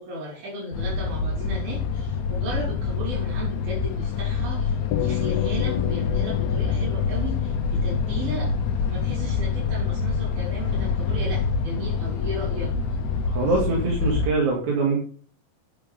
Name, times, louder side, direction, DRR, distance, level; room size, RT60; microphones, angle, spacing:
voice 1, 0.0-12.7, right 1 dB, 85° right, -5 dB, 5.3 m, -35 dB
sound 1, 0.7-14.3, left 5 dB, 65° left, 2.1 m, -26 dB
sound 2, 4.9-9.5, left 12 dB, 85° left, 1.6 m, -33 dB
voice 2, 13.3-15.0, right 3 dB, 55° right, -1 dB, 3.4 m, -23 dB
11.5 x 9.8 x 3.6 m, 0.43 s
omnidirectional pair, 4.1 m